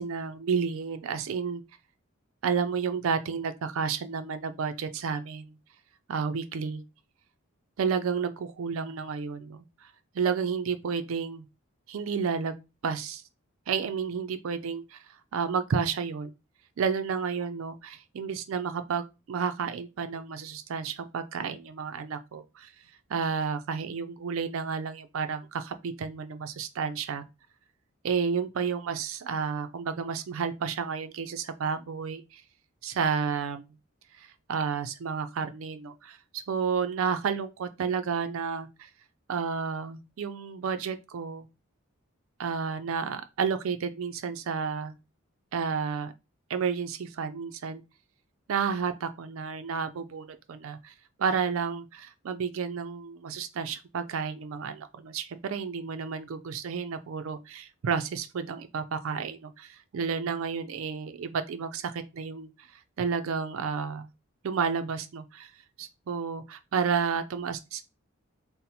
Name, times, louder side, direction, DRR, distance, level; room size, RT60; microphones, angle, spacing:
voice 1, 0.0-1.6 2.4-5.6 6.1-6.8 7.8-11.5 11.9-12.6 12.8-13.2 13.7-15.0 15.3-16.3 16.8-22.7 23.1-27.2 28.0-32.4 32.8-33.6 34.2-38.9 39.3-41.5 42.4-45.0 45.5-46.1 46.5-47.8 48.5-50.9 51.2-64.1 64.4-65.5 65.8-67.8, right 6 dB, 70° right, 0.4 m, -31 dB
4.0 x 2.0 x 4.1 m
head